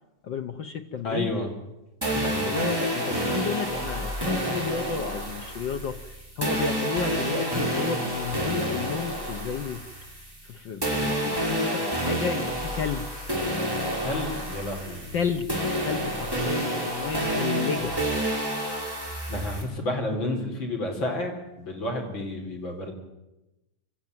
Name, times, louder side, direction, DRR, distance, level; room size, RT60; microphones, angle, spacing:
voice 1, 0.2-1.4 2.1-9.8 10.4-13.1 15.1-15.5 15.8-18.0, left 6 dB, 75° left, 6 dB, 1.0 m, -32 dB
voice 2, 1.0-1.5 2.3-2.6 14.0-15.1 19.3-22.9, left 1 dB, 40° left, 2 dB, 4.7 m, -30 dB
sound 1, 2.0-10.5 10.8-19.6, right 1 dB, 5° right, 5.3 m, -29 dB
26.0 x 14.5 x 9.3 m, 0.99 s
omnidirectional pair, 3.4 m